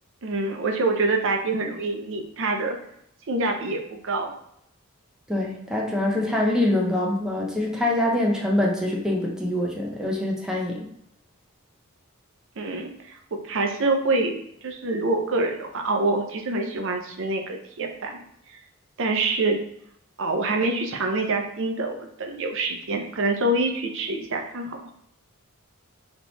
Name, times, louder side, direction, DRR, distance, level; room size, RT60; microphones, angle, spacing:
voice 1, 0.2-2.8 3.3-4.3 12.6-13.2 13.4-14.3 14.6-18.2 18.5-18.6 19.0-19.6 20.2-24.9, right 2 dB, 60° right, 3 dB, 0.6 m, -26 dB
voice 2, 5.3-10.8, left 1 dB, 5° right, -2 dB, 0.7 m, -24 dB
3.7 x 2.9 x 3.9 m, 0.73 s
head